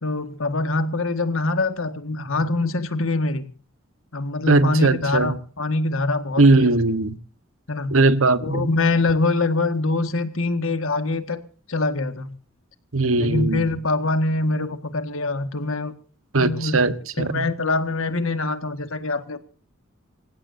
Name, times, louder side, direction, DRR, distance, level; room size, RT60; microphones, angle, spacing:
voice 1, 0.0-3.5 4.1-6.8 7.7-8.0 8.4-11.4 11.7-12.3 13.2-15.9 16.4-16.8 17.2-19.4, left 2 dB, 70° left, 10 dB, 1.7 m, -24 dB
voice 2, 4.5-5.3 6.4-7.1 7.9-8.7 12.9-13.7 16.3-17.4, right 2 dB, 70° right, 13 dB, 1.3 m, -19 dB
26.5 x 16.0 x 2.7 m, 0.40 s
head